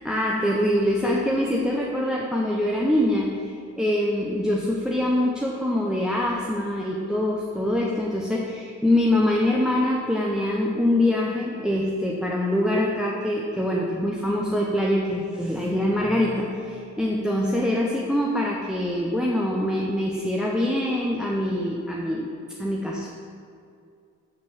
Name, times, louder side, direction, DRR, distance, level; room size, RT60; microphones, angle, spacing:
voice 1, 0.0-22.3 22.6-23.1, left 1 dB, ahead, -2 dB, 0.7 m, -24 dB
7.6 x 3.6 x 6.3 m, 2.4 s
cardioid pair, 90°, 30 cm